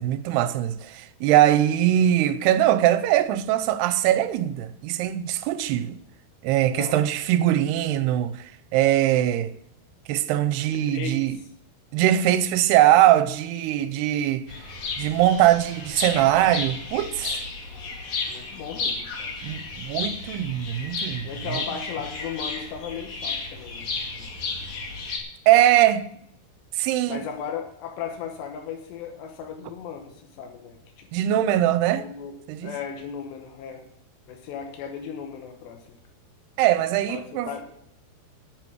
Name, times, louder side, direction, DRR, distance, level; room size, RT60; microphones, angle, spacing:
voice 1, 0.0-6.0 6.4-9.5 10.1-11.4 11.9-14.5 15.0-17.4 19.4-21.3 21.5-21.6 25.5-26.1 26.7-27.2 31.1-32.0 32.5-32.7 36.6-37.5, right 12 dB, 85° right, 2.7 m, -21 dB
voice 2, 6.7-7.1 10.8-11.4 18.3-19.4 21.2-23.9 24.2-24.3 27.1-31.1 31.9-33.9 34.3-36.0 37.1-37.7, left 7 dB, 90° left, 3.4 m, -36 dB
sound 1, 14.5-25.2, left 4 dB, 50° left, 2.9 m, -33 dB
10.5 x 7.7 x 8.1 m
omnidirectional pair, 4.8 m